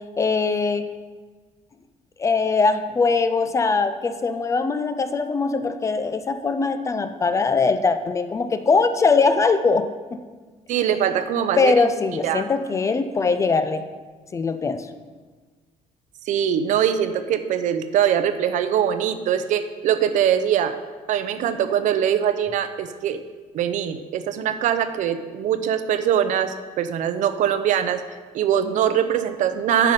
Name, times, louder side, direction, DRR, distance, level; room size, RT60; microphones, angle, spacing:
voice 1, 0.2-0.8 2.2-10.2 11.6-13.8 14.3-14.9, left 4 dB, 20° left, 10 dB, 0.3 m, -21 dB
voice 2, 10.7-11.7 12.2-12.4 16.3-20.8 21.1-23.2 23.5-28.0 28.3-29.9, right 9 dB, 60° right, 10 dB, 0.6 m, -22 dB
9.1 x 5.6 x 5.2 m, 1.4 s
cardioid pair, 170°, 14 cm